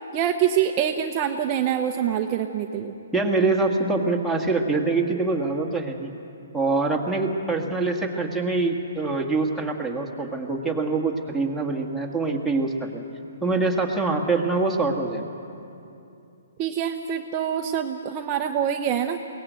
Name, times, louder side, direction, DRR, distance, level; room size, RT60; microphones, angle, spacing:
voice 1, 0.1-2.9 16.6-19.2, right 9 dB, 30° right, 3 dB, 0.8 m, -25 dB
voice 2, 3.1-6.1 6.5-13.0 13.4-15.2, right 3 dB, ahead, 1 dB, 1.8 m, -24 dB
22.0 x 18.0 x 8.2 m, 2.7 s
hypercardioid pair, 145°, 0 cm